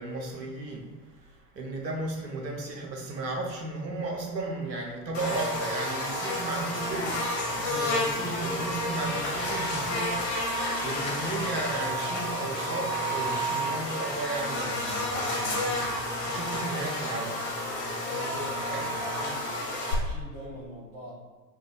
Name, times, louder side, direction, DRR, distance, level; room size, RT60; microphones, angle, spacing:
voice 1, 0.0-17.5 18.7-18.8, right 2 dB, 85° right, 0 dB, 0.7 m, -35 dB
Buzz, 5.1-19.9, left 1 dB, 50° left, 0.9 m, -30 dB
voice 2, 18.1-19.5 19.9-21.2, left 1 dB, 15° right, -8 dB, 0.4 m, -41 dB
2.4 x 2.2 x 3.8 m, 1.3 s
figure-of-eight pair, 85°, 50 cm